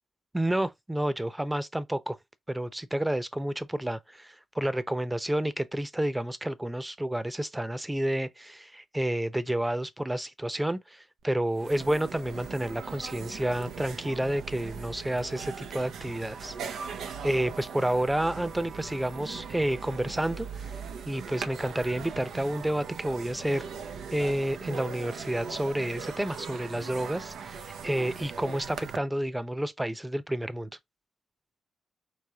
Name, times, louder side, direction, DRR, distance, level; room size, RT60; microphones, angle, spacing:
voice 1, 0.3-2.2 2.5-16.5 16.9-17.0 17.2-20.7 21.1-23.6 24.1-30.7, right 1 dB, 15° right, 0.8 m, -30 dB
sound 1, 11.2-11.3 11.5-29.0, right 6 dB, 85° right, 0.6 m, -40 dB
5.0 x 3.1 x 2.8 m
supercardioid pair, 50°, 0 cm